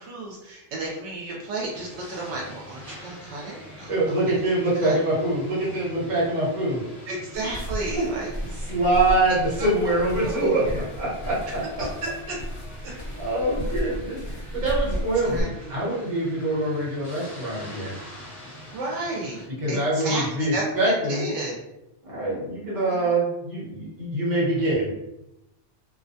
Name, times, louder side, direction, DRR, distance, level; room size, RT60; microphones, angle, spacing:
voice 1, 0.0-4.4 4.7-5.0 7.1-8.3 9.3-9.7 10.2-10.8 11.8-11.9 12.3-12.4 14.9-15.0 15.2-15.8 18.7-21.6 22.9-23.1, right 2 dB, 80° right, -3 dB, 0.9 m, -33 dB
sound 1, 1.7-19.5, equal, 30° left, 1.1 m, -44 dB
voice 2, 3.9-6.8 7.4-7.5 7.9-8.0 8.7-11.6 12.9-18.0 19.6-21.2 22.0-25.0, right 2 dB, 45° right, -6 dB, 1.1 m, -24 dB
sound 2, 7.3-15.4, equal, 50° left, 1.0 m, -33 dB
2.3 x 2.1 x 2.6 m, 0.88 s
omnidirectional pair, 1.2 m